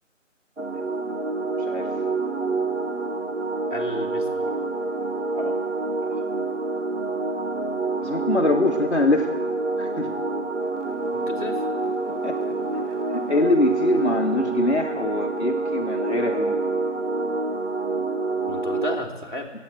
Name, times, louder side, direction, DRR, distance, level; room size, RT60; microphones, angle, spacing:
sound 1, 0.6-19.0, right 3 dB, 65° right, 1.1 m, -27 dB
voice 1, 3.7-4.5 11.1-11.7 18.5-19.5, left 2 dB, 40° left, -1 dB, 1.6 m, -33 dB
voice 2, 8.0-9.3 9.8-10.1 12.2-12.5 13.1-16.6, left 2 dB, 60° left, 1 dB, 1.1 m, -24 dB
17.5 x 8.0 x 7.8 m, 1.3 s
figure-of-eight pair, 175°, 39 cm